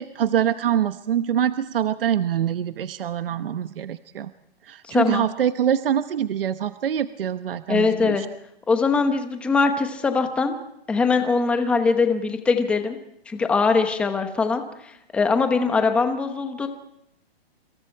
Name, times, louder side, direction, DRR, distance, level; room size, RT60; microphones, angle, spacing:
voice 1, 0.0-4.3 4.7-8.3, right 9 dB, 60° right, 11 dB, 1.0 m, -24 dB
voice 2, 4.9-5.2 7.7-8.2 8.7-10.6 10.9-13.0 13.3-16.7, left 4 dB, 5° left, 6 dB, 0.9 m, -22 dB
27.5 x 27.0 x 4.6 m, 0.78 s
hypercardioid pair, 170°, 31 cm